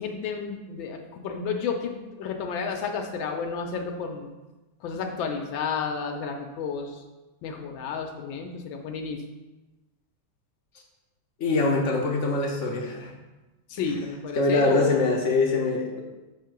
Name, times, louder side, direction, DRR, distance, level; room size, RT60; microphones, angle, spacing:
voice 1, 0.0-4.3 4.8-7.0 7.4-9.2 13.7-15.0, left 5 dB, 80° left, 3 dB, 1.4 m, -31 dB
voice 2, 11.4-13.1 14.4-16.0, left 3 dB, 60° left, 0 dB, 0.8 m, -24 dB
6.9 x 2.8 x 5.8 m, 1.1 s
omnidirectional pair, 2.1 m